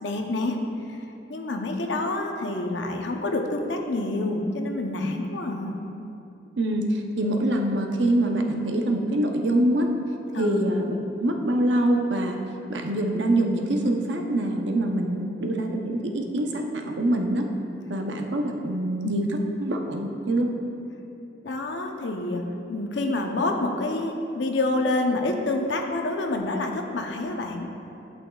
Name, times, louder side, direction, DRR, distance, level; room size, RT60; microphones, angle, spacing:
voice 1, 0.0-0.6 0.9-1.0 1.3-5.8 10.3-10.7 19.0-19.3 21.4-22.4 22.7-27.7, left 2 dB, 80° left, 3 dB, 0.7 m, -27 dB
voice 2, 6.6-9.9 10.4-12.4 12.7-17.5 17.9-19.3 19.6-20.6, right 1 dB, 80° right, 3 dB, 0.7 m, -25 dB
11.0 x 6.1 x 2.3 m, 2.8 s
head